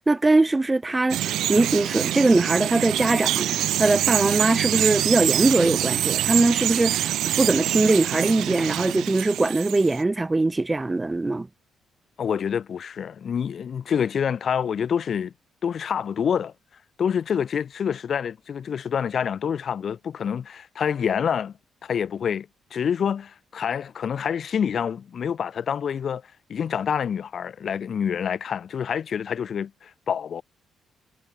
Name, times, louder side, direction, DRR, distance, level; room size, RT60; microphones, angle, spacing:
voice 1, 0.0-7.1 7.4-11.5, right 2 dB, 20° right, 1.1 m, -21 dB
Bird vocalization bird call bird song, 1.1-10.0, right 12 dB, 80° right, 2.9 m, -25 dB
voice 2, 12.2-15.3 15.6-16.5 17.0-21.5 21.8-26.2 26.5-30.4, left 7 dB, 55° left, 5.6 m, -27 dB
cardioid pair, 90°, 0 cm